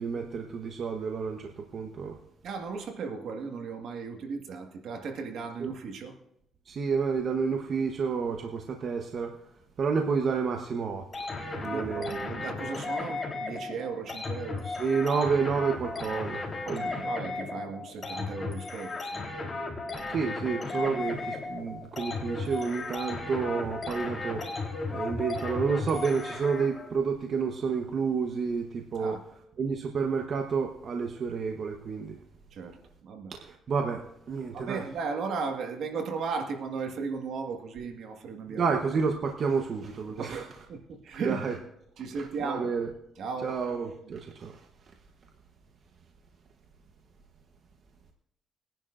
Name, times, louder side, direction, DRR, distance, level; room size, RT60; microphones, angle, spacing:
voice 1, 0.0-2.2 5.6-5.7 6.7-9.4 9.8-12.4 14.6-16.9 20.1-29.2 29.6-32.2 33.3-34.8 38.5-40.5 41.2-41.6 42.1-42.9 43.4-44.7, right 5 dB, 55° right, 1.0 m, -30 dB
voice 2, 2.4-6.2 11.7-14.7 16.7-19.3 29.0-29.2 32.5-33.3 34.5-38.6 40.1-41.4 42.0-42.7 43.2-43.6, right 5 dB, 70° right, 1.7 m, -36 dB
sound 1, 11.1-26.9, left 3 dB, 30° left, 3.8 m, -35 dB
21.0 x 10.5 x 2.6 m
cardioid pair, 90°, 0 cm